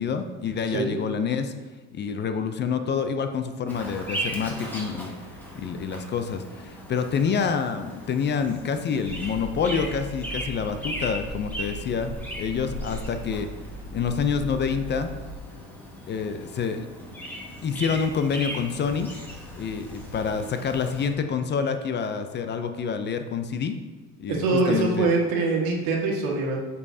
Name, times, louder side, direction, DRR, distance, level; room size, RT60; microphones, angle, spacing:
voice 1, 0.0-1.5 1.9-5.1 5.6-13.5 13.9-15.1 16.1-16.9 17.6-19.1 19.6-23.8 24.2-25.1, left 6 dB, 30° left, 8 dB, 0.5 m, -27 dB
Bird vocalization bird call bird song, 3.7-21.1, right 1 dB, 5° left, 1.5 m, -38 dB
Hammer, 9.0-15.4, equal, 20° right, 1.3 m, -38 dB
voice 2, 24.3-26.6, right 3 dB, 80° right, -1 dB, 1.6 m, -23 dB
8.2 x 5.5 x 2.7 m, 1.4 s
cardioid pair, 120°, 35 cm